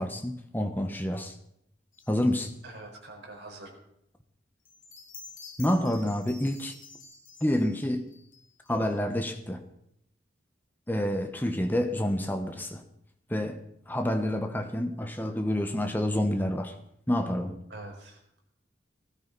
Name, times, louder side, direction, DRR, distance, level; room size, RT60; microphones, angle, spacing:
voice 1, 0.0-1.3 2.1-2.5 5.6-6.8 7.4-8.0 8.7-9.6 10.9-12.8 13.3-13.6 13.9-16.7 17.1-17.6, left 1 dB, 10° left, 5 dB, 1.1 m, -28 dB
sound 1, 1.9-2.6 4.6-9.2, left 4 dB, 45° left, 3.7 m, -50 dB
voice 2, 2.6-3.8 17.7-18.2, right 2 dB, 75° right, 0 dB, 4.6 m, -44 dB
19.5 x 13.0 x 4.0 m, 0.75 s
head